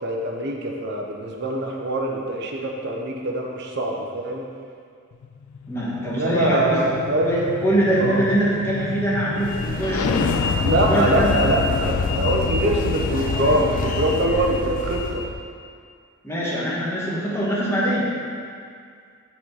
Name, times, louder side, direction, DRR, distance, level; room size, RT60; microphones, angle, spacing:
voice 1, 0.0-4.4 6.0-7.3 8.0-8.2 10.6-15.2, right 1 dB, 55° right, 0 dB, 0.7 m, -24 dB
sound 1, 5.2-15.4, left 6 dB, 85° left, 0.3 m, -28 dB
voice 2, 5.7-6.8 7.2-11.4 16.2-18.1, right 1 dB, 10° left, -8 dB, 1.4 m, -23 dB
sound 2, 9.3-15.3, left 2 dB, 40° left, 0.6 m, -29 dB
5.9 x 4.3 x 4.7 m, 2.2 s
head